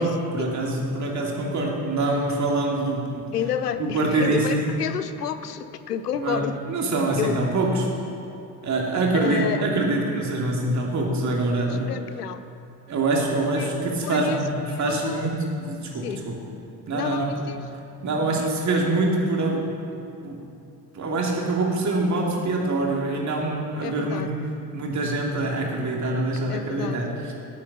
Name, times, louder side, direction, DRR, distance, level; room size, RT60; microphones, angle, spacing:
voice 1, 0.0-3.3 3.8-4.7 6.1-7.9 8.6-11.9 12.9-16.4 16.9-17.4 18.0-19.6 20.2-20.4 20.9-24.3 24.7-27.3, right 2 dB, 35° right, -1 dB, 2.8 m, -25 dB
voice 2, 3.3-6.6 7.2-7.4 9.1-9.6 11.9-12.4 13.5-13.7 14.0-15.3 16.0-16.2 16.9-17.6 18.3-18.5 23.8-24.3 26.5-27.0, left 8 dB, 80° left, 12 dB, 0.6 m, -30 dB
18.5 x 8.6 x 5.6 m, 2.6 s
figure-of-eight pair, 55°, 46 cm